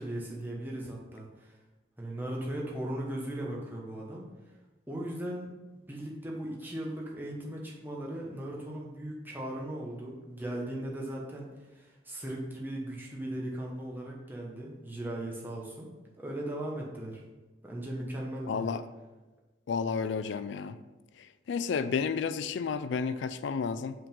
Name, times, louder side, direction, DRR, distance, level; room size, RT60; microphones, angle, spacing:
voice 1, 0.0-1.5 2.0-4.3 4.9-5.5 5.9-15.9 16.2-17.2 17.6-18.8, right 1 dB, 10° right, -3 dB, 0.9 m, -38 dB
voice 2, 18.5-18.8 19.7-20.8 21.5-23.9, left 5 dB, 65° left, 13 dB, 0.3 m, -31 dB
5.0 x 3.7 x 5.3 m, 1.2 s
head